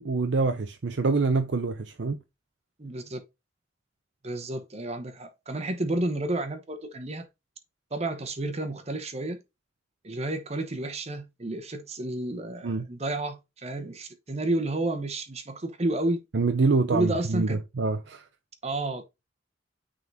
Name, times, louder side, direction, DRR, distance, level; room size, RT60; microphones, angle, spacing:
voice 1, 0.0-2.2 12.6-12.9 16.3-18.3, right 3 dB, 70° right, 0.6 m, -26 dB
voice 2, 2.8-3.2 4.2-7.3 7.9-9.4 10.0-16.2 16.9-17.6 18.6-19.0, right 2 dB, 35° right, 1.0 m, -31 dB
9.3 x 3.9 x 2.7 m
head